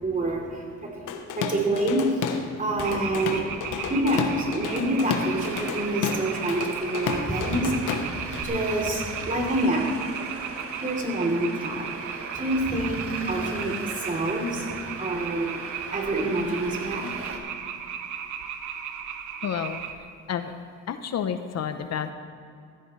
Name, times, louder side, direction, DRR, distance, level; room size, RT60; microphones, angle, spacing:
voice 1, 0.0-10.0 10.7-17.3, right 1 dB, 25° right, -1 dB, 3.2 m, -27 dB
Drum kit / Drum, 1.1-2.5 2.8-8.4, left 7 dB, 90° left, 1.1 m, -31 dB
sound 1, 2.8-19.9, right 8 dB, 80° right, 1.0 m, -36 dB
voice 2, 3.1-3.6 19.4-20.5 20.9-22.1, left 8 dB, 60° left, 9 dB, 0.8 m, -31 dB
Traffic noise roadway noise, 5.0-17.4, right 4 dB, 50° right, 1.6 m, -39 dB
15.5 x 13.5 x 3.2 m, 2.5 s
cardioid pair, 90°, 30 cm